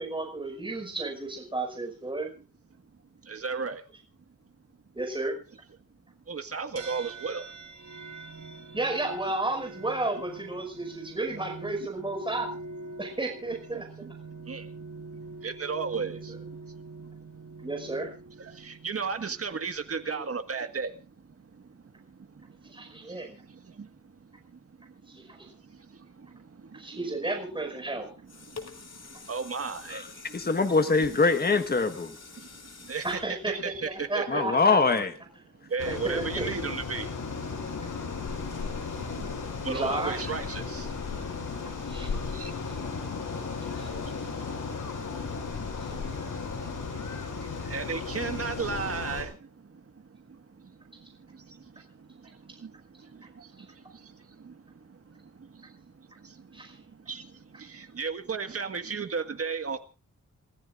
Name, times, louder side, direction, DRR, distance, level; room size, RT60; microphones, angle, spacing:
voice 1, 0.0-2.3 4.9-5.4 8.7-12.5 13.0-14.1 17.6-18.1 20.1-20.2 22.6-23.4 25.1-25.4 26.7-28.1 29.1-29.2 31.2-31.3 33.0-34.8 35.8-36.5 39.6-40.2 41.9-42.1 43.6-43.9 45.8-46.0 56.5-56.7, right 2 dB, 15° right, 5.3 m, -33 dB
voice 2, 2.7-3.9 5.5-5.6 5.9-6.0 6.3-7.5 7.9-8.8 10.8-10.9 11.8-11.9 12.9-13.0 13.7-18.0 18.3-27.4 27.8-30.8 32.1-34.8 35.5-59.8, right 5 dB, 50° right, 1.7 m, -38 dB
sound 1, 6.8-20.3, right 3 dB, 75° right, 8.0 m, -45 dB
sound 2, 28.0-34.3 34.8-34.9, left 4 dB, 55° left, 3.5 m, -47 dB
voice 3, 30.3-32.1 34.3-35.1, left 4 dB, 30° left, 1.5 m, -23 dB
sound 3, 35.8-49.2, left 5 dB, 85° left, 7.3 m, -35 dB
30.0 x 14.5 x 2.6 m
wide cardioid pair, 130°, 30 cm